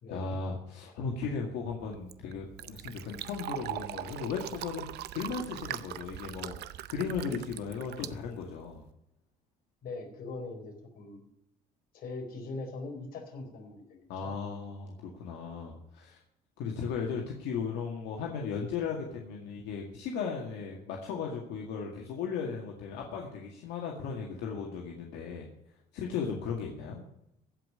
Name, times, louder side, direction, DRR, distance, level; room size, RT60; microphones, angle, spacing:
voice 1, 0.1-8.8 14.1-16.2 16.6-25.5 25.9-27.0, left 5 dB, 90° left, 0 dB, 2.0 m, -36 dB
Fill (with liquid), 1.8-8.9, right 14 dB, 75° right, 0.6 m, -41 dB
voice 2, 9.8-11.2 11.9-13.8 14.2-14.3, left 3 dB, 60° left, 2 dB, 4.3 m, -41 dB
15.5 x 5.4 x 9.7 m, 0.80 s
cardioid pair, 110°, 17 cm